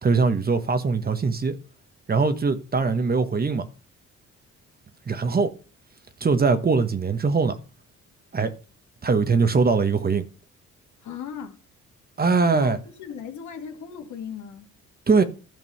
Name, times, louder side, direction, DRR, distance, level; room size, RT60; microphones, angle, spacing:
voice 1, 0.0-1.6 2.1-3.7 5.1-5.5 6.2-7.6 8.3-8.5 9.0-10.3 12.2-12.8 15.1-15.2, right 4 dB, 30° right, 1.1 m, -21 dB
voice 2, 11.0-11.6 12.5-14.7, left 7 dB, 75° left, 1.9 m, -37 dB
12.5 x 5.3 x 5.5 m
cardioid pair, 90°, 30 cm